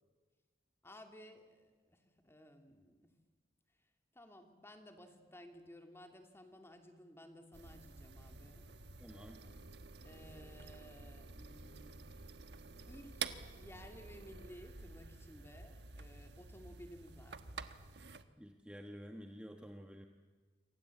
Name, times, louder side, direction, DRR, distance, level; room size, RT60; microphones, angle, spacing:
voice 1, 0.8-3.1 4.1-8.7 10.0-12.2 12.8-17.6, equal, 15° left, 5 dB, 2.8 m, -56 dB
sound 1, 7.5-18.2, right 5 dB, 75° right, 1.4 m, -50 dB
voice 2, 9.0-9.4 18.4-20.1, equal, 5° right, 3 dB, 1.4 m, -50 dB
28.0 x 24.0 x 8.5 m, 1.4 s
head